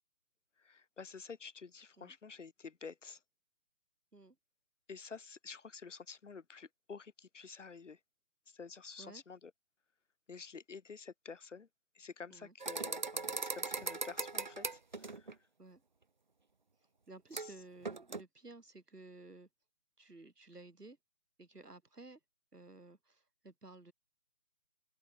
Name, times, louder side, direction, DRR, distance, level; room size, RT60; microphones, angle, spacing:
voice 1, 0.6-3.2 4.9-8.0 8.5-9.5 10.3-11.7 12.0-15.3 17.4-17.5, left 5 dB, 50° left, 6.9 m, -50 dB
sound 1, 12.6-15.3 17.3-17.5 17.8-18.2, right 4 dB, 30° right, 0.7 m, -39 dB
voice 2, 17.1-19.5 20.0-21.0 21.4-22.2 22.5-23.9, right 2 dB, 80° right, 3.7 m, -54 dB
open air
figure-of-eight pair, 145°, 46 cm